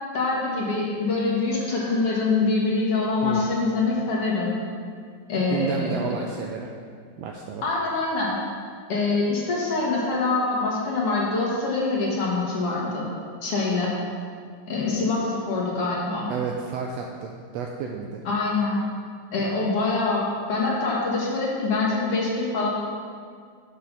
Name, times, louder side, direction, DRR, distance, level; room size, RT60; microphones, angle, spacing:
voice 1, 0.1-4.6 5.3-6.2 7.6-8.4 8.9-13.1 13.4-14.0 14.7-16.3 18.3-18.8 19.3-22.7, left 3 dB, 55° left, -4 dB, 2.2 m, -24 dB
voice 2, 5.5-6.7 7.2-7.6 16.3-18.2, right 6 dB, 80° right, 1 dB, 1.5 m, -31 dB
8.0 x 6.5 x 5.6 m, 2.1 s
omnidirectional pair, 3.4 m